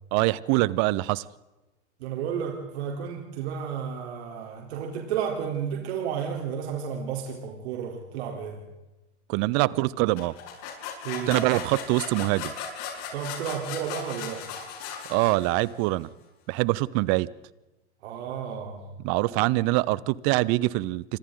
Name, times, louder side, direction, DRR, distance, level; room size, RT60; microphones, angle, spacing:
voice 1, 0.1-1.2 9.3-10.3 11.3-12.5 15.1-16.1 16.5-17.3 19.0-21.2, right 20 dB, 50° right, 21 dB, 1.0 m, -24 dB
voice 2, 2.0-8.6 11.0-11.3 13.1-14.4 18.0-18.8, right 7 dB, 70° right, 1 dB, 4.0 m, -32 dB
sound 1, 10.2-15.8, left 7 dB, 55° left, 7.6 m, -37 dB
28.0 x 25.5 x 4.0 m, 1.1 s
hypercardioid pair, 105°, 34 cm